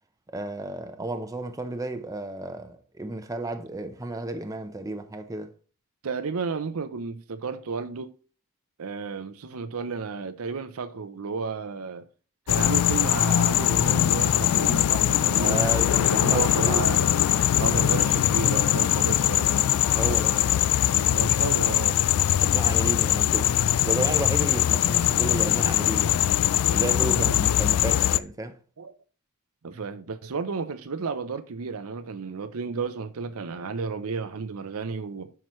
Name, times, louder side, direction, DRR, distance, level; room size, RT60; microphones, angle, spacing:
voice 1, 0.3-5.5 15.4-16.8 19.9-20.4 22.4-23.5 23.8-26.2 26.7-28.6, right 2 dB, 15° right, 0.6 m, -32 dB
voice 2, 6.0-8.1 8.8-12.1 12.5-15.7 16.1-17.1 17.6-20.2 21.1-22.0 23.9-24.2 27.0-27.5 28.8-28.9 29.6-35.3, right 4 dB, 70° right, 0.6 m, -32 dB
sound 1, 12.5-28.2, left 12 dB, 75° left, 0.3 m, -22 dB
sound 2, 13.0-24.0, left 1 dB, 5° left, 2.1 m, -43 dB
9.1 x 5.9 x 3.1 m
head